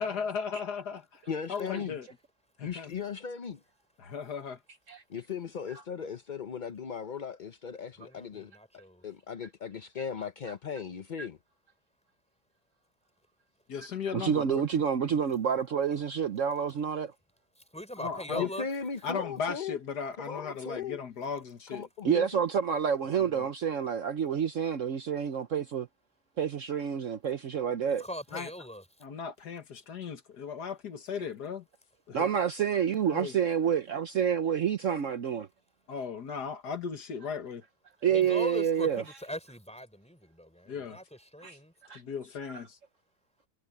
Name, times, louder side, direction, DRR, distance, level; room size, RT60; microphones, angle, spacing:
voice 1, 0.0-1.2 1.5-2.1 2.6-2.9 4.0-4.6 13.7-14.6 15.0-15.1 18.0-18.5 19.0-21.8 28.3-28.5 29.0-31.6 32.1-32.3 33.1-33.4 35.9-37.6 40.7-41.0 41.9-42.8, left 6 dB, 75° left, 2.1 m, -36 dB
voice 2, 1.3-2.0 2.6-3.6 5.1-8.5 9.0-11.4 18.3-19.8 20.2-21.0 21.7-22.4, left 6 dB, 45° left, 0.6 m, -37 dB
voice 3, 8.0-9.0 17.7-18.7 27.8-28.9 38.1-41.7, equal, 5° left, 5.0 m, -41 dB
voice 4, 14.1-17.1 22.0-25.9 26.4-28.0 32.1-35.5 38.0-39.0 41.4-41.6 41.9-42.0 42.5-42.6, right 8 dB, 55° right, 1.1 m, -28 dB
omnidirectional pair, 1.7 m